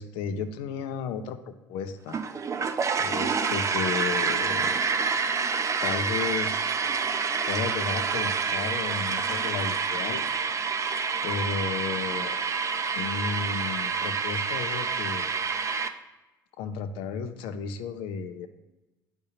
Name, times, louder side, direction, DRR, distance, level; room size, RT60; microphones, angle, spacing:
voice 1, 0.0-2.2 3.0-4.8 5.8-6.8 7.5-10.2 11.2-12.4 12.9-15.3 16.6-18.5, left 6 dB, 60° left, 10 dB, 0.5 m, -33 dB
sound 1, 2.1-15.9, right 5 dB, 30° right, 0.5 m, -28 dB
10.5 x 3.7 x 2.8 m, 1.0 s
figure-of-eight pair, 55°, 10 cm